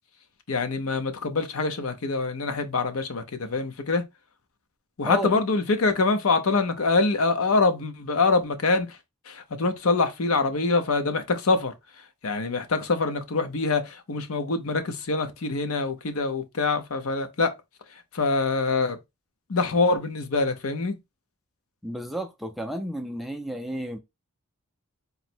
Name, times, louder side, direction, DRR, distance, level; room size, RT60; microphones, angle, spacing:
voice 1, 0.5-4.0 5.0-9.0 9.3-11.7 12.2-17.5 18.1-19.0 19.5-21.0, left 3 dB, 65° left, 0.7 m, -25 dB
voice 2, 5.0-5.4 21.8-24.0, right 1 dB, ahead, 0.4 m, -32 dB
4.0 x 2.1 x 4.3 m
head